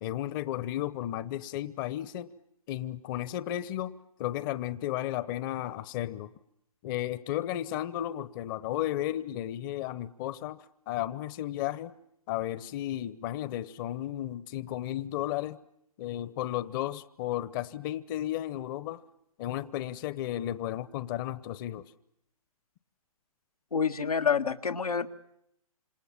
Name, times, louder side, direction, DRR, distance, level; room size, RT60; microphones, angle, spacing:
voice 1, 0.0-2.3 2.7-6.3 6.8-11.9 12.3-15.6 16.0-19.0 19.4-21.9, left 13 dB, 35° left, 16 dB, 1.0 m, -34 dB
voice 2, 23.7-25.1, left 6 dB, 90° left, 5 dB, 1.7 m, -27 dB
29.0 x 27.5 x 7.3 m, 0.80 s
hypercardioid pair, 130°, 18 cm